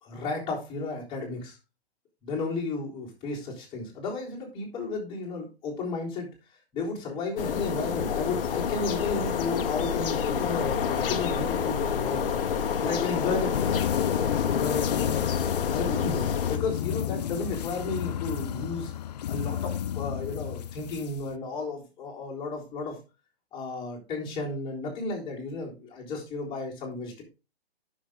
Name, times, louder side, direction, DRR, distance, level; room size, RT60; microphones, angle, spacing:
voice 1, 0.0-1.6 2.2-6.3 6.7-12.2 12.8-13.8 14.1-15.2 15.7-18.9 19.3-23.0 23.5-27.2, left 3 dB, 15° left, -4 dB, 3.7 m, -33 dB
sound 1, 7.4-16.6, left 7 dB, 60° left, 1.1 m, -28 dB
sound 2, 13.5-21.3, left 10 dB, 40° left, 0.4 m, -31 dB
10.0 x 6.5 x 3.7 m, 0.28 s
hypercardioid pair, 150°, 31 cm